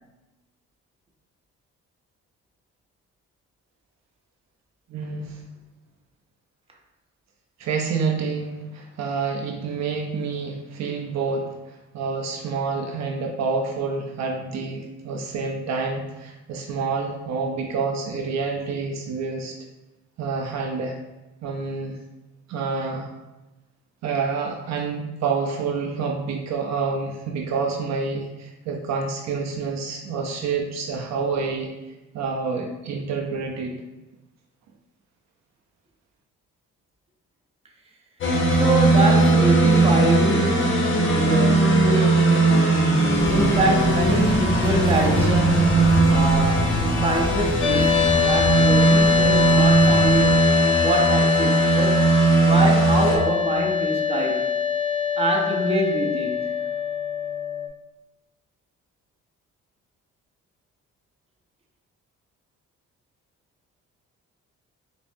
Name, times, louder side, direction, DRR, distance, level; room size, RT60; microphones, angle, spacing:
voice 1, 4.9-5.4 7.6-11.5 11.9-19.6 20.2-21.0 21.4-22.0 22.5-23.1 24.0-31.7 32.1-33.8, right 4 dB, 65° right, 2 dB, 0.5 m, -28 dB
sound 1, 38.2-53.2, right 2 dB, 40° left, 0.8 m, -19 dB
voice 2, 38.5-42.4 43.3-45.8 46.1-48.0 48.2-50.5 50.8-52.1 52.4-54.6 55.2-56.6, right 2 dB, 20° right, 0 dB, 0.6 m, -25 dB
sound 2, 43.2-50.4, left 1 dB, 15° left, 0.3 m, -29 dB
sound 3, 47.6-57.7, left 7 dB, 75° left, 0.6 m, -23 dB
5.1 x 2.0 x 2.6 m, 1.0 s
cardioid pair, 90°, 30 cm